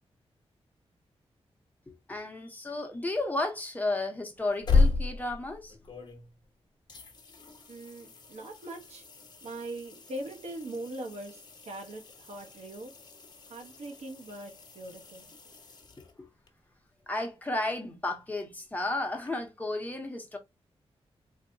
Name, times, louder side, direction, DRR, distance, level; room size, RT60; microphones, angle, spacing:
voice 1, 1.9-5.7 17.1-20.4, left 2 dB, 15° left, 0.9 m, -33 dB
sound 1, 4.4-6.5 6.9-16.5 19.3-19.4, left 3 dB, 40° left, 1.0 m, -34 dB
voice 2, 7.7-9.0 9.4-13.0 13.5-15.3, right 1 dB, 90° right, 1.1 m, -41 dB
4.0 x 2.8 x 2.7 m
wide cardioid pair, 150°, 11 cm